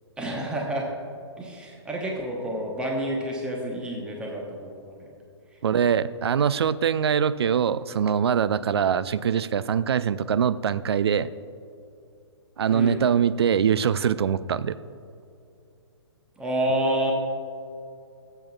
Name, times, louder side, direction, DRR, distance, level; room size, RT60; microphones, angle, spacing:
voice 1, 0.2-0.9 1.4-5.1 5.5-5.6 12.7-13.0 16.4-17.1, right 1 dB, 5° right, -1 dB, 1.0 m, -29 dB
voice 2, 5.6-11.3 12.6-14.8, right 8 dB, 60° right, 15 dB, 0.4 m, -23 dB
18.0 x 7.8 x 2.4 m, 2.5 s
figure-of-eight pair, 125°, 15 cm